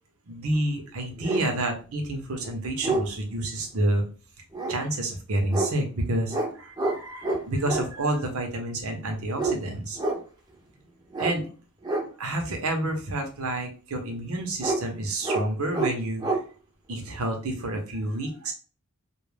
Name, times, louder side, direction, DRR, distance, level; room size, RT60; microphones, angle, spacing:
voice 1, 0.3-4.0 4.7-10.0 11.2-11.5 12.2-16.4 16.9-18.5, right 1 dB, 80° right, 4 dB, 0.7 m, -29 dB
sound 1, 0.5-0.6 1.2-1.5 2.1-2.2 2.4-3.1 4.5-4.7 5.5-5.7 6.3-6.5 6.8-7.0 7.2-7.8 9.4-9.6 10.0-10.2 11.1-11.3 11.8-12.0 14.6-14.8 15.2-15.4 15.7-15.9 16.2-16.4, right 2 dB, 20° right, 0.5 m, -27 dB
2.3 x 2.1 x 3.2 m, 0.36 s
head